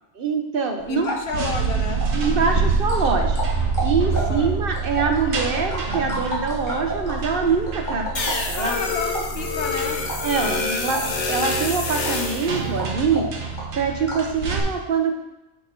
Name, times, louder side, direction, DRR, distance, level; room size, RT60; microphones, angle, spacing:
voice 1, 0.2-1.1 2.1-3.4 3.8-8.7 10.2-13.3 13.7-15.1, right 5 dB, 60° right, 4 dB, 0.8 m, -24 dB
sound 1, 0.8-14.4, right 1 dB, 15° left, 2.1 m, -34 dB
voice 2, 0.9-2.0 4.1-4.5 8.6-10.0 10.3-11.1, left 4 dB, 60° left, 4 dB, 0.9 m, -31 dB
sound 2, 1.3-14.6, right 4 dB, 85° right, 1.3 m, -27 dB
sound 3, 8.2-12.5, left 4 dB, 90° left, 1.2 m, -27 dB
8.6 x 3.7 x 4.3 m, 0.93 s
omnidirectional pair, 1.2 m